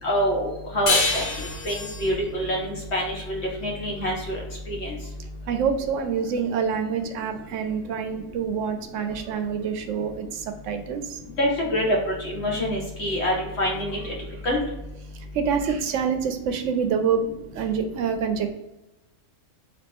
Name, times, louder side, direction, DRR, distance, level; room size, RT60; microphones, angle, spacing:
voice 1, 0.0-4.4 4.7-4.9 11.4-14.1 14.4-14.6, equal, 55° left, -2 dB, 1.5 m, -26 dB
sound 1, 0.9-4.0, left 3 dB, 80° left, 1.2 m, -28 dB
voice 2, 5.5-11.2 15.3-17.2 17.5-18.5, right 6 dB, 75° right, 7 dB, 0.9 m, -26 dB
4.1 x 2.9 x 3.4 m, 0.94 s
omnidirectional pair, 1.4 m